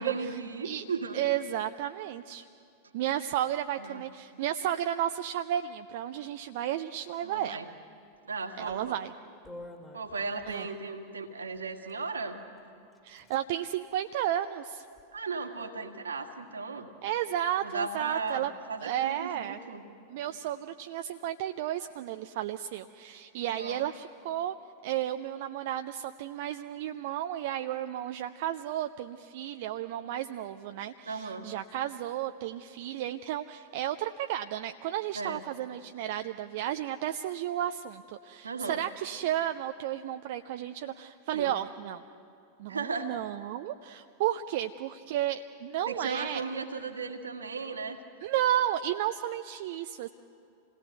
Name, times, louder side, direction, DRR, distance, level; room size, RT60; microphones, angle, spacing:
voice 1, 0.0-1.2 3.8-4.0 7.2-7.7 8.3-9.0 9.9-12.4 15.1-16.9 17.6-19.8 23.5-23.9 31.1-31.5 35.1-35.4 38.4-38.8 41.3-41.5 42.7-43.1 45.8-48.0, right 4 dB, 75° right, 4 dB, 1.8 m, -36 dB
voice 2, 1.1-2.5 2.9-7.6 8.6-9.1 10.5-10.7 13.0-14.8 17.0-18.5 18.8-19.6 20.1-24.6 24.8-42.0 42.6-46.6 48.2-50.1, right 11 dB, 50° right, 8 dB, 0.5 m, -33 dB
sound 1, 8.6-8.9 9.4-10.6 11.5-12.0 12.6-12.7 12.9-13.4 13.7-13.8 14.3-15.0, left 1 dB, 10° left, 2.4 m, -49 dB
27.5 x 18.0 x 8.0 m, 2.7 s
figure-of-eight pair, 90°, 0 cm